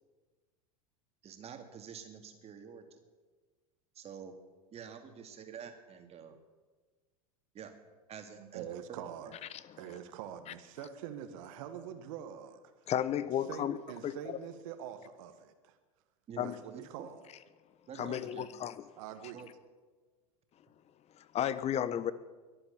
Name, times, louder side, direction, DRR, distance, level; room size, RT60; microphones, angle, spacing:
voice 1, 1.2-3.0 3.9-4.4 4.7-6.4 7.5-7.7 8.1-9.0 16.3-17.1 17.9-18.5 19.3-19.5, right 7 dB, 35° right, 6 dB, 2.5 m, -48 dB
voice 2, 8.3-9.3 9.7-12.8 13.5-15.8 16.4-17.2 18.0-18.2 19.0-19.4, right 9 dB, 60° right, 9 dB, 1.5 m, -45 dB
voice 3, 12.9-13.8 14.0-14.1 16.4-16.6 18.0-18.8 21.1-22.1, left 10 dB, 35° left, 16 dB, 1.0 m, -33 dB
22.5 x 8.7 x 7.0 m, 1.3 s
hypercardioid pair, 85°, 19 cm